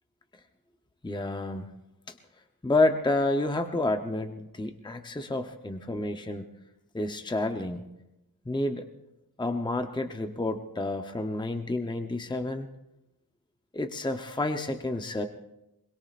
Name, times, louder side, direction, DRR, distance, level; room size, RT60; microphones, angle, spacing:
voice 1, 1.0-1.7 2.6-6.5 6.9-7.9 8.5-8.9 9.4-12.7 13.7-15.2, left 2 dB, 15° left, 6 dB, 0.8 m, -29 dB
23.5 x 22.0 x 2.5 m, 0.93 s
wide cardioid pair, 120°, 35 cm